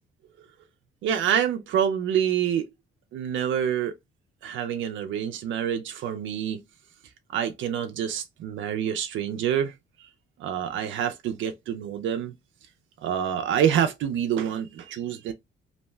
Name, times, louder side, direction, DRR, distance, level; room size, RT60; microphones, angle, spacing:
voice 1, 1.0-2.7 3.1-3.9 4.4-6.6 7.3-9.7 10.4-12.3 13.0-15.3, right 9 dB, 75° right, 0.4 m, -27 dB
2.7 x 2.1 x 3.2 m
cardioid pair, 90°, 20 cm